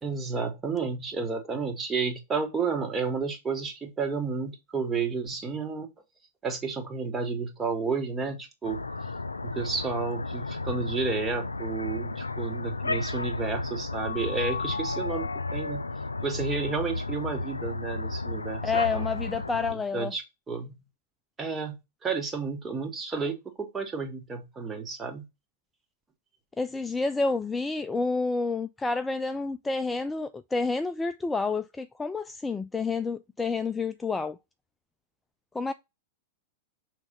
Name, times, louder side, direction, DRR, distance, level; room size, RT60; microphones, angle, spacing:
voice 1, 0.0-5.9 6.4-8.8 9.4-15.8 16.2-18.6 18.9-19.0 19.9-20.7 21.4-25.3, right 4 dB, 20° right, 1.4 m, -31 dB
sound 1, 8.6-19.7, left 3 dB, 85° left, 0.4 m, -33 dB
voice 2, 18.6-20.1 26.6-34.4 35.5-35.7, left 4 dB, 10° left, 0.4 m, -29 dB
6.0 x 3.3 x 5.3 m
figure-of-eight pair, 95°, 0 cm